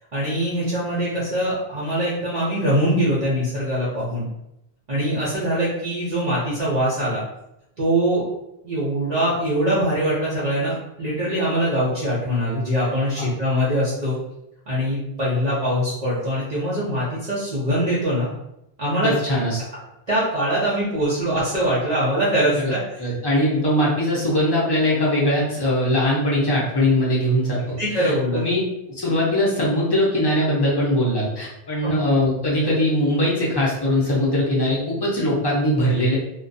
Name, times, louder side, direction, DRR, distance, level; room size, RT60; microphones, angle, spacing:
voice 1, 0.1-4.3 4.9-7.2 7.8-8.3 8.6-14.2 14.7-18.3 18.8-19.1 20.1-23.0 27.8-28.4 31.8-31.9, equal, 50° right, -9 dB, 0.7 m, -23 dB
voice 2, 19.0-19.6 22.6-22.7 23.0-28.6 28.9-36.2, left 1 dB, 25° left, -6 dB, 0.7 m, -21 dB
2.5 x 2.2 x 2.6 m, 0.86 s
omnidirectional pair, 1.0 m